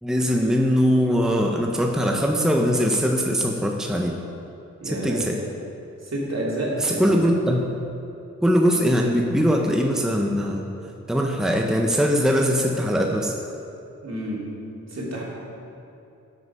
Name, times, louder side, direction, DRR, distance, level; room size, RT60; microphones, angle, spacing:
voice 1, 0.0-4.2 4.8-5.4 6.8-7.8 8.4-10.7 11.1-13.3, equal, ahead, 1 dB, 1.0 m, -21 dB
voice 2, 4.8-5.2 6.1-7.1 14.0-14.4 14.9-15.2, right 1 dB, 60° right, -5 dB, 3.3 m, -29 dB
12.5 x 8.3 x 5.7 m, 2.8 s
wide cardioid pair, 75°, 30 cm